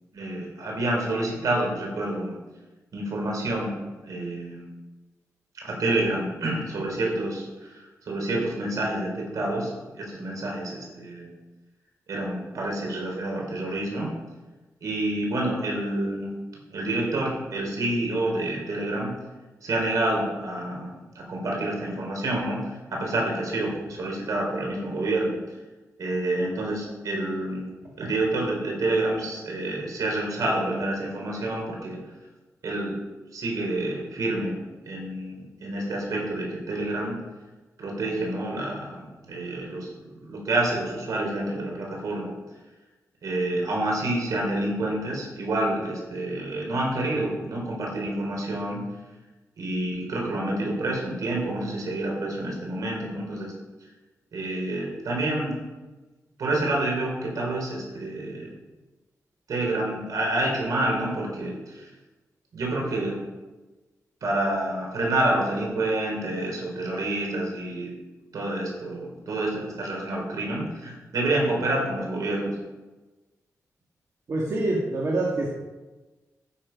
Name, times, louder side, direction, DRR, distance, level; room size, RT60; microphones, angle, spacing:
voice 1, 0.1-2.4 2.9-3.7 4.0-4.7 5.5-9.7 10.0-11.3 12.1-14.1 14.8-16.3 16.7-19.1 19.6-25.3 26.0-27.7 28.0-32.0 32.6-33.0 33.3-34.5 34.8-37.2 37.8-42.3 43.2-48.8 49.6-53.5 54.3-55.6 56.4-58.5 59.5-61.9 62.5-63.2 64.2-67.9 68.3-72.5, right 1 dB, 85° right, -1 dB, 3.8 m, -28 dB
voice 2, 74.3-75.5, right 2 dB, 60° right, -3 dB, 1.9 m, -25 dB
12.5 x 7.1 x 5.3 m, 1.2 s
cardioid pair, 90°, 6 cm